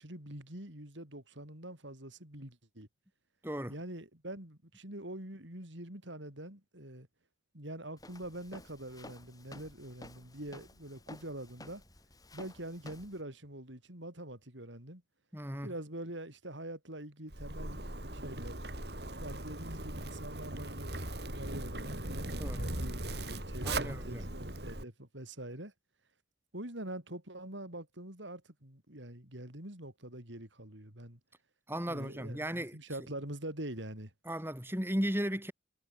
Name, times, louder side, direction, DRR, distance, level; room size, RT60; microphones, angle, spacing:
voice 1, 0.0-2.9 3.7-7.1 7.5-11.8 12.3-15.0 15.6-17.8 18.1-18.6 19.2-23.1 23.5-25.7 26.5-31.2 31.9-34.1, right 1 dB, 80° right, 6.5 m, -44 dB
voice 2, 3.4-3.7 15.3-15.7 22.4-22.6 23.6-24.2 31.7-32.8 34.3-35.5, equal, 10° right, 4.9 m, -36 dB
Walk footsteps, 8.0-13.2, left 1 dB, 20° left, 6.5 m, -53 dB
Zipper (clothing), 17.3-24.8, right 1 dB, 60° right, 5.2 m, -39 dB
head